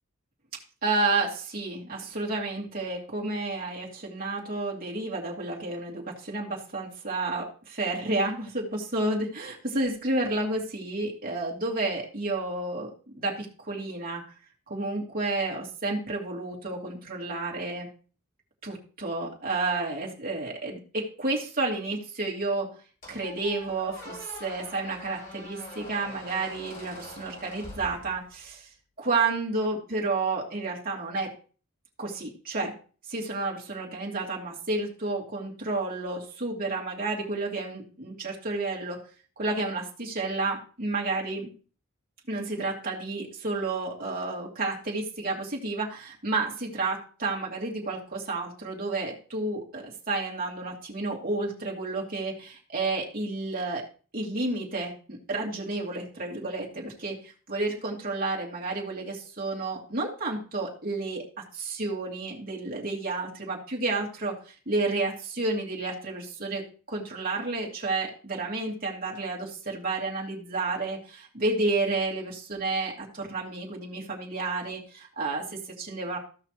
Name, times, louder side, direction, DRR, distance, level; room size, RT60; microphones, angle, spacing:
voice 1, 0.8-14.2 14.7-17.9 18.6-22.7 23.1-28.7 29.0-31.3 32.0-32.7 33.1-39.0 39.4-41.5 42.3-53.9 54.1-57.2 57.5-76.2, right 3 dB, 40° right, -2 dB, 2.5 m, -31 dB
Squeak, 23.0-28.5, left 1 dB, 35° left, 3.1 m, -44 dB
16.0 x 5.8 x 3.0 m, 0.38 s
head